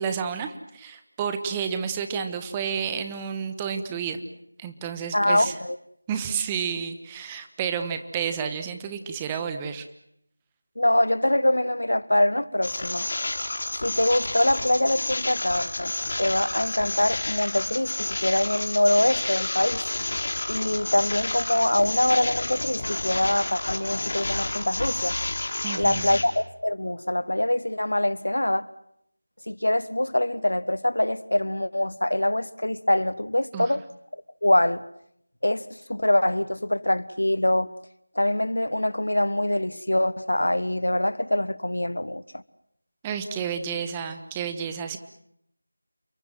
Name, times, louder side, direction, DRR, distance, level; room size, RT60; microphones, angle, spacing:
voice 1, 0.0-4.2 4.6-5.5 6.1-9.9 25.6-26.2 33.5-33.7 43.0-45.0, right 7 dB, 10° right, 1.3 m, -30 dB
voice 2, 5.1-5.8 10.8-13.1 13.8-19.8 20.5-25.2 25.8-28.7 29.5-33.8 34.4-34.9 35.4-37.7 38.1-42.4, left 1 dB, 75° left, 1.3 m, -24 dB
sound 1, 12.6-26.2, left 2 dB, 45° left, 4.4 m, -30 dB
29.5 x 23.0 x 7.7 m
figure-of-eight pair, 170°, 0 cm